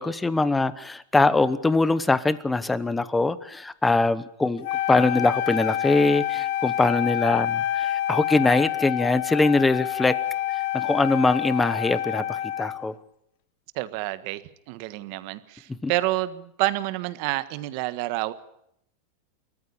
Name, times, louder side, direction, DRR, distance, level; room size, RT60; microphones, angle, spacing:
voice 1, 0.0-10.2 10.7-12.9 15.8-15.9, left 3 dB, 5° left, 16 dB, 1.0 m, -22 dB
Wind instrument woodwind instrument, 4.6-12.9, left 12 dB, 55° left, 1.0 m, -27 dB
voice 2, 13.7-18.3, right 18 dB, 50° right, 13 dB, 1.5 m, -29 dB
30.0 x 14.0 x 8.7 m, 0.75 s
supercardioid pair, 160°, 0 cm